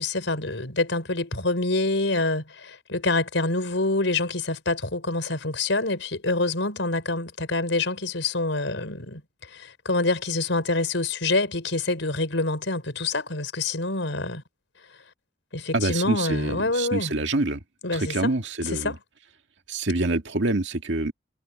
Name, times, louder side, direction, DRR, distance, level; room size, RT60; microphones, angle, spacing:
voice 1, 0.0-9.2 9.5-14.4 15.5-17.1 17.8-18.3 18.7-19.0, left 2 dB, 90° left, 4.4 m, -26 dB
voice 2, 15.7-17.6 17.9-18.9 19.7-21.1, right 2 dB, 75° right, 2.1 m, -26 dB
head